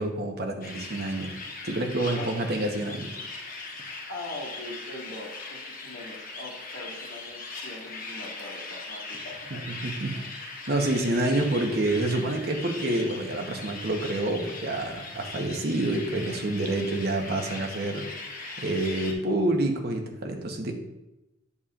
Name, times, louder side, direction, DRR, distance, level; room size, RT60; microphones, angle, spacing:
voice 1, 0.0-1.3 1.6-3.1 9.7-10.3 10.7-18.1 18.6-20.7, right 2 dB, 55° right, 4 dB, 0.9 m, -28 dB
sound 1, 0.6-19.1, left 3 dB, 45° left, 1.1 m, -40 dB
voice 2, 4.1-9.6 10.8-11.1, left 2 dB, 70° left, -3 dB, 1.9 m, -41 dB
8.4 x 6.8 x 2.4 m, 0.95 s
head